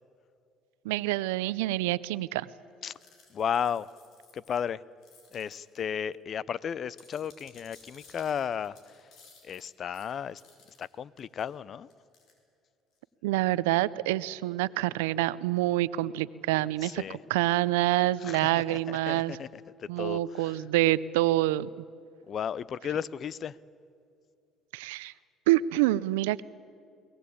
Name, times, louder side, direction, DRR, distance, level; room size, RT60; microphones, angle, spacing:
voice 1, 0.8-2.5 13.2-19.4 19.9-21.7 24.7-25.1 25.5-26.4, right 16 dB, 90° right, 19 dB, 0.5 m, -27 dB
sound 1, 2.9-4.6 5.0-5.8 6.1-6.2 6.7-10.9 11.2-11.4 11.9-12.3, left 4 dB, 65° left, 5.1 m, -58 dB
voice 2, 3.3-3.9 4.3-4.8 5.3-9.1 9.4-10.4 10.8-11.9 16.8-17.2 18.2-20.6 22.3-23.6, left 8 dB, 50° left, 22 dB, 0.6 m, -34 dB
22.5 x 19.0 x 8.5 m, 2.5 s
supercardioid pair, 75°, 0 cm